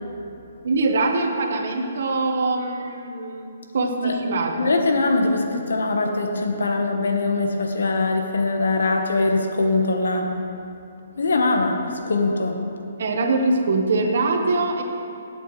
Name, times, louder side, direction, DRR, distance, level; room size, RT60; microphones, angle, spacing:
voice 1, 0.6-4.7 13.0-14.8, right 3 dB, 60° right, 3 dB, 1.3 m, -23 dB
voice 2, 4.6-10.3 11.2-12.6, left 3 dB, 90° left, 3 dB, 1.3 m, -22 dB
16.5 x 8.1 x 3.2 m, 2.6 s
hypercardioid pair, 165°, 0 cm